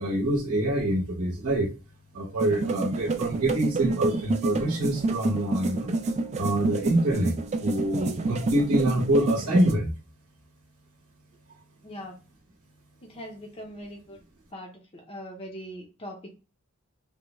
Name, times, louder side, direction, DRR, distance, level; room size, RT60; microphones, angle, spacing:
voice 1, 0.0-1.7 2.1-5.9 6.4-9.9, right 1 dB, 80° right, -2 dB, 0.8 m, -25 dB
sound 1, 2.4-9.7, right 3 dB, 30° right, 0.3 m, -29 dB
voice 2, 11.8-12.2 13.0-14.2 14.5-16.3, equal, 25° left, 0 dB, 0.6 m, -41 dB
3.4 x 2.2 x 3.0 m, 0.32 s
head